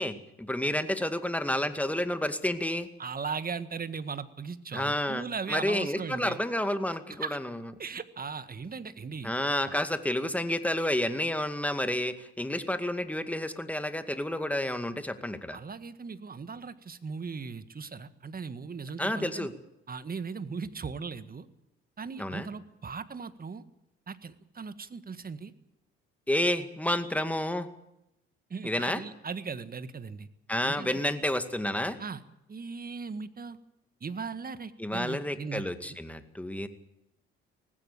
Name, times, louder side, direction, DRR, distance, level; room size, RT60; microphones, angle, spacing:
voice 1, 0.0-2.9 4.7-7.6 9.2-15.6 19.0-19.5 22.2-22.5 26.3-27.7 28.6-29.0 30.5-32.0 34.8-36.7, left 1 dB, 5° left, 9 dB, 2.1 m, -30 dB
voice 2, 3.0-6.4 7.2-7.4 7.8-9.3 9.7-9.8 15.5-19.5 19.9-21.5 22.0-23.6 24.1-25.5 28.5-30.3 30.6-30.9 32.0-32.2 32.5-33.6 34.0-35.6, right 5 dB, 30° right, 12 dB, 1.7 m, -38 dB
18.5 x 16.5 x 8.7 m, 0.84 s
hypercardioid pair, 50°, 30 cm